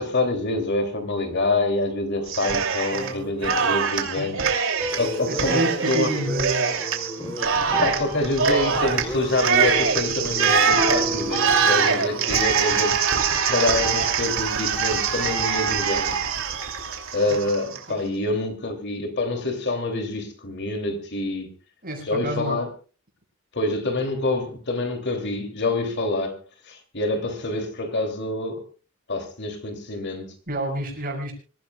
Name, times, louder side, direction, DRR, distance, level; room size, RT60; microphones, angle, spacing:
voice 1, 0.0-4.4 4.9-6.1 7.4-13.0 13.4-16.2 17.1-21.5 22.0-22.7 23.5-26.4 26.6-28.6 29.1-30.3, left 2 dB, 50° left, 5 dB, 3.0 m, -26 dB
Cheering, 2.3-3.1 3.4-17.8, right 6 dB, 60° right, 2.9 m, -23 dB
sound 1, 2.9-3.9 4.9-7.9 8.7-12.4, equal, 10° left, 3.4 m, -34 dB
voice 2, 4.1-4.5 5.3-6.7 17.3-17.4 17.9-18.0 21.8-22.6 30.5-31.3, right 1 dB, 40° right, 2 dB, 6.7 m, -29 dB
sound 2, 4.8-7.2 7.7-9.2 10.8-12.3, right 1 dB, 10° right, 0.8 m, -34 dB
25.5 x 15.5 x 2.4 m, 0.37 s
head